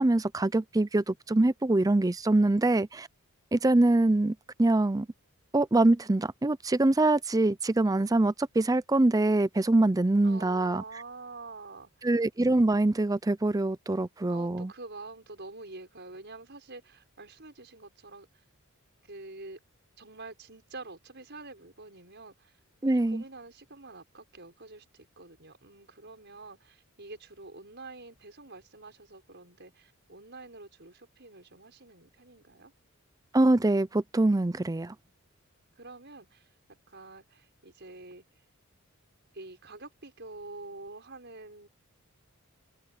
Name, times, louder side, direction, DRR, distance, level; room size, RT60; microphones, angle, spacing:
voice 1, 0.0-3.1 3.5-5.1 5.5-10.8 12.0-14.7 22.8-23.2 33.3-34.9, right 2 dB, 15° right, 0.4 m, -24 dB
voice 2, 10.2-12.1 14.3-18.4 19.0-19.6 20.0-22.6 22.9-32.7 35.8-38.2 39.3-41.7, right 3 dB, 50° right, 6.5 m, -47 dB
open air
head